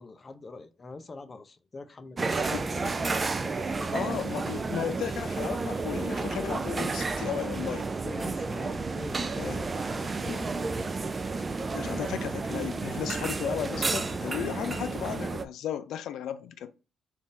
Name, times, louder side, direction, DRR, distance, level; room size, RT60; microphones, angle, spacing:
voice 1, 0.0-4.5 8.0-10.8, left 3 dB, 30° left, 0.6 m, -45 dB
sound 1, 2.2-15.4, right 3 dB, 30° right, 0.3 m, -31 dB
voice 2, 3.9-7.9 9.4-9.6 10.2-10.4 11.7-16.7, left 9 dB, 80° left, 0.4 m, -35 dB
3.5 x 2.6 x 4.0 m
cardioid pair, 90°, 0 cm